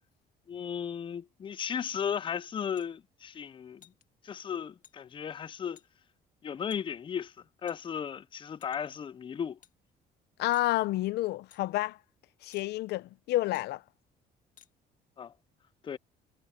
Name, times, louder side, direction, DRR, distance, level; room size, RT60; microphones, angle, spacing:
voice 1, 0.5-3.8 4.2-5.8 6.4-7.3 7.6-9.6 15.2-15.3 15.8-16.0, left 8 dB, 30° left, 0.5 m, -35 dB
sound 1, 2.8-2.9 3.8-4.0 4.8-5.0 5.8-5.9 6.7-6.8 7.7-8.1 8.6-9.0 9.6-9.7 10.5-10.7 11.5-11.6 12.5-12.7 13.5-13.7 14.6-14.7, left 9 dB, 50° left, 1.9 m, -58 dB
voice 2, 10.4-12.0 12.4-13.8, left 16 dB, 75° left, 0.6 m, -29 dB
cardioid pair, 110°, 17 cm